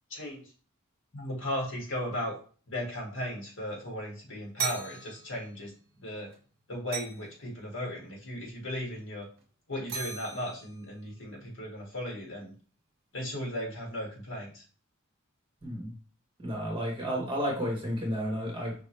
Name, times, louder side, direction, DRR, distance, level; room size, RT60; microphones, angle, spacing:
voice 1, 0.1-0.4 1.1-2.4 2.7-5.7 6.0-6.3 6.7-9.3 9.7-12.5 13.1-14.6, left 1 dB, 65° left, -1 dB, 2.0 m, -36 dB
sound 1, 4.6-5.8 6.1-6.4 6.9-7.4 9.2-9.4 9.9-11.1, right 6 dB, 50° right, 1.1 m, -38 dB
voice 2, 15.6-15.9 16.4-18.7, equal, 25° right, -2 dB, 1.3 m, -32 dB
5.1 x 3.0 x 3.2 m, 0.40 s
head